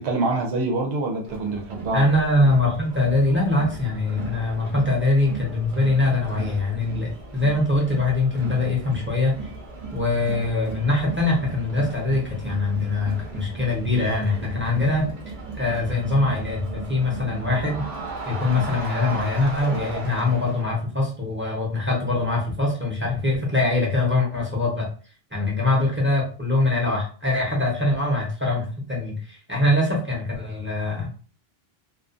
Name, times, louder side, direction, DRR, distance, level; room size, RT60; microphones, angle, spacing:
voice 1, 0.0-2.0, right 3 dB, 85° right, 1 dB, 0.9 m, -25 dB
Crowd, 1.3-20.7, right 3 dB, 50° right, 0.8 m, -36 dB
voice 2, 1.9-9.4 9.9-15.1 15.6-17.8 18.3-24.9 25.3-31.1, left 2 dB, 15° right, -4 dB, 0.7 m, -23 dB
2.3 x 2.3 x 2.5 m, 0.39 s
omnidirectional pair, 1.1 m